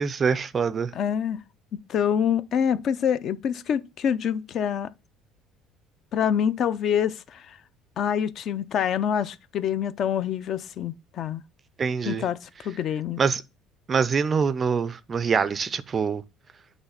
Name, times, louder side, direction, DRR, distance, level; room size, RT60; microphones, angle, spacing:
voice 1, 0.0-0.9 11.8-12.2 13.2-13.4 13.9-16.2, right 5 dB, 25° right, 0.4 m, -24 dB
voice 2, 0.9-1.4 1.7-4.9 6.1-7.6 8.0-11.4 12.1-13.2, left 8 dB, 40° left, 0.4 m, -26 dB
8.1 x 3.2 x 5.6 m
cardioid pair, 165°, 0 cm